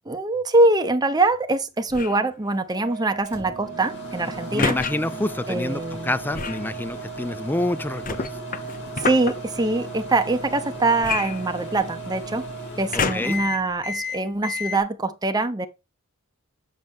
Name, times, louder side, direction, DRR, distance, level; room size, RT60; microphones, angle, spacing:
voice 1, 0.1-4.8 5.5-6.1 9.0-12.5 12.8-15.7, right 2 dB, 20° right, 0.7 m, -23 dB
sound 1, 1.9-2.3 4.6-4.9 6.3-6.7 8.0-9.3 11.0-12.0 12.9-13.5 14.1-14.2, left 5 dB, 40° left, 0.7 m, -28 dB
sound 2, 2.7-12.7, right 10 dB, 35° right, 1.1 m, -39 dB
Microwave oven, 3.3-14.8, left 3 dB, 55° left, 4.3 m, -36 dB
voice 2, 4.5-8.2 12.9-13.4, left 1 dB, 10° left, 0.3 m, -27 dB
7.0 x 6.3 x 3.5 m
head